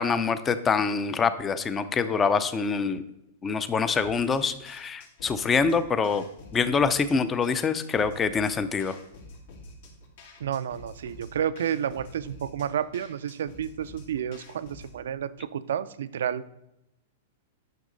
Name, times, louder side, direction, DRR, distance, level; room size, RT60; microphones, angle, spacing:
voice 1, 0.0-3.0 3.4-6.2 6.5-9.0, left 5 dB, 15° left, 12 dB, 0.5 m, -25 dB
sound 1, 4.0-15.0, left 2 dB, 70° left, 2.2 m, -48 dB
voice 2, 10.4-16.4, right 9 dB, 80° right, 15 dB, 0.4 m, -31 dB
9.3 x 6.3 x 3.9 m, 0.84 s
hypercardioid pair, 150°, 0 cm